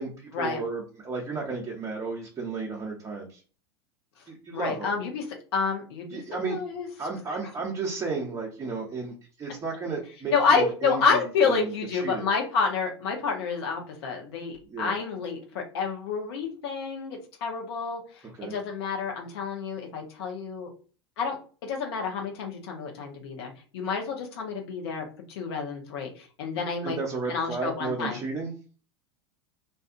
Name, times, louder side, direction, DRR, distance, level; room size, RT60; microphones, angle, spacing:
voice 1, 0.0-3.4 4.3-4.9 6.1-6.6 7.0-12.3 14.7-14.9 18.4-18.5 26.8-28.5, right 3 dB, 20° right, -3 dB, 0.8 m, -33 dB
voice 2, 4.5-5.2 5.5-6.9 10.3-20.7 21.2-21.4 21.6-27.0 27.3-28.2, left 5 dB, 60° left, 2 dB, 0.9 m, -29 dB
2.6 x 2.4 x 2.5 m, 0.37 s
figure-of-eight pair, 85°, 15 cm